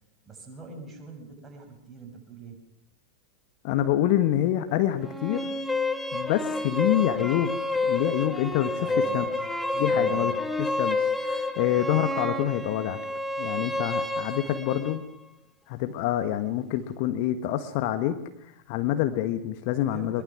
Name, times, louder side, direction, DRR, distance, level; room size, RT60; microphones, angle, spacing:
voice 1, 0.2-2.6 8.8-9.5 9.9-10.4 19.8-20.2, right 3 dB, 15° right, 2 dB, 6.5 m, -44 dB
voice 2, 3.6-5.5 6.1-7.5 7.8-9.3 9.7-10.3 10.6-13.0 13.4-15.0 15.7-18.2 18.7-20.2, left 12 dB, 45° left, 9 dB, 1.5 m, -26 dB
sound 1, 5.0-15.0, left 2 dB, 5° left, 1.6 m, -29 dB
23.0 x 22.0 x 6.2 m, 0.79 s
figure-of-eight pair, 90°, 0 cm